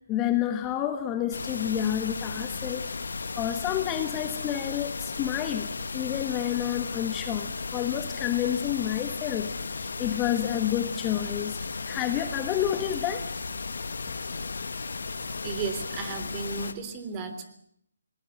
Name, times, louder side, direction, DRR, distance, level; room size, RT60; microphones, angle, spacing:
voice 1, 0.1-2.9 3.3-5.7 5.9-11.6 11.9-13.3, left 11 dB, 20° left, 8 dB, 1.3 m, -29 dB
sound 1, 1.3-16.7, left 4 dB, 70° left, 1.8 m, -35 dB
voice 2, 15.4-17.4, right 5 dB, 25° right, 9 dB, 3.2 m, -34 dB
20.0 x 20.0 x 8.1 m, 0.72 s
figure-of-eight pair, 150°, 0 cm